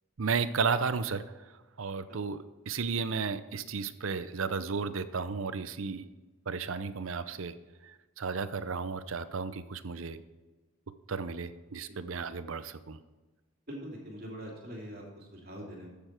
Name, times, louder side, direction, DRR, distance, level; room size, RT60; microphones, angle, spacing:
voice 1, 0.2-1.2 1.8-6.0 6.5-7.5 7.8-10.2 11.1-13.0, right 5 dB, 70° right, 13 dB, 0.6 m, -33 dB
voice 2, 13.7-15.9, equal, 45° right, -1 dB, 2.9 m, -43 dB
14.5 x 6.9 x 4.5 m, 1.2 s
head